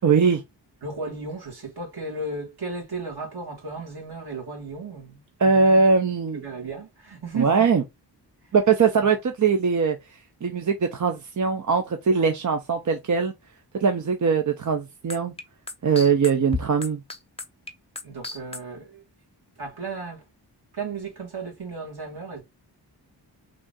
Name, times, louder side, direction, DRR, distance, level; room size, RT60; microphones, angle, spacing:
voice 1, 0.0-0.4 5.4-6.4 7.4-7.8 8.5-10.0 10.4-13.3 13.7-15.3 15.8-17.0, right 5 dB, 45° right, 0.6 m, -21 dB
voice 2, 0.8-5.8 6.3-7.7 18.0-19.0 19.6-20.2 20.7-22.4, right 3 dB, 60° right, 2.1 m, -34 dB
sound 1, 15.1-18.6, left 3 dB, 15° left, 0.7 m, -32 dB
3.7 x 2.7 x 3.6 m
wide cardioid pair, 90°, 43 cm